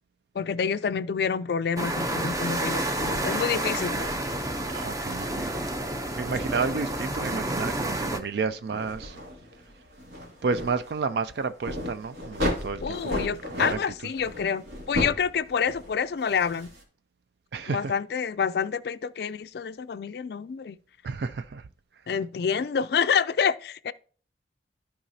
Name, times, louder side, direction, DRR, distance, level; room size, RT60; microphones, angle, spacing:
voice 1, 0.3-2.9 3.2-4.0 12.8-16.7 17.7-20.8 22.1-23.9, left 6 dB, 55° left, 0.3 m, -27 dB
sound 1, 1.8-8.2, right 1 dB, 20° right, 0.6 m, -30 dB
sound 2, 3.0-16.8, left 1 dB, 80° right, 2.5 m, -36 dB
voice 2, 4.7-5.7 6.2-9.2 10.4-14.1 17.5-17.9 21.0-21.7, right 4 dB, 60° right, 0.4 m, -31 dB
14.0 x 4.8 x 2.7 m
head